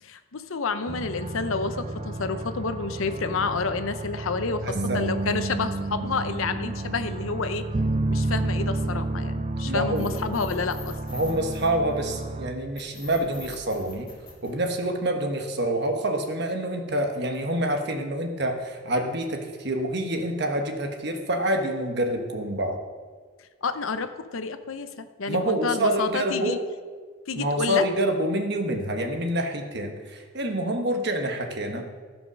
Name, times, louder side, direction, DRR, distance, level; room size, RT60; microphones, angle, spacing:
voice 1, 0.0-7.6 8.1-11.0 23.6-26.6 27.3-27.8, left 4 dB, 70° left, 10 dB, 0.7 m, -29 dB
sound 1, 0.9-12.5, right 2 dB, 30° right, 0.5 m, -30 dB
voice 2, 4.6-5.0 9.6-10.1 11.1-14.1 14.4-22.8 25.3-26.6 27.4-31.9, right 1 dB, 50° right, 4 dB, 1.2 m, -27 dB
sound 2, 10.0-12.2 12.8-15.2, left 3 dB, 25° left, 3.7 m, -44 dB
14.5 x 5.3 x 6.2 m, 1.5 s
head